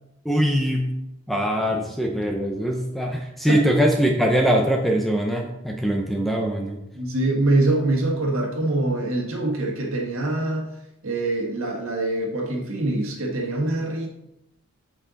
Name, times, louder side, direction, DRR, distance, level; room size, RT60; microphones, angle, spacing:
voice 1, 0.2-0.9 1.3-6.8, equal, ahead, 1 dB, 0.7 m, -22 dB
voice 2, 6.9-10.7 11.0-14.1, right 2 dB, 65° right, 0 dB, 1.7 m, -24 dB
7.8 x 5.7 x 4.0 m, 0.85 s
head